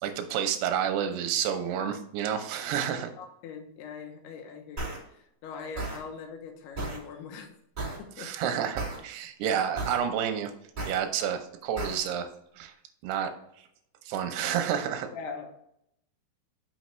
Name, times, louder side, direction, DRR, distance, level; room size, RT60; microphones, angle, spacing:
voice 1, 0.0-3.1 8.2-10.5 10.9-12.3 12.6-12.7 13.0-13.3 14.1-15.1, right 8 dB, 85° right, 7 dB, 2.8 m, -29 dB
voice 2, 2.8-7.6 8.0-8.3 15.1-15.5, left 5 dB, 85° left, 5 dB, 2.9 m, -42 dB
sound 1, 4.8-5.0 5.8-6.0 6.8-7.0 7.8-8.0 8.8-9.0 9.8-10.0 10.8-11.0 11.8-12.0, right 2 dB, 15° right, 1.9 m, -33 dB
6.3 x 6.1 x 3.1 m, 0.75 s
omnidirectional pair, 4.5 m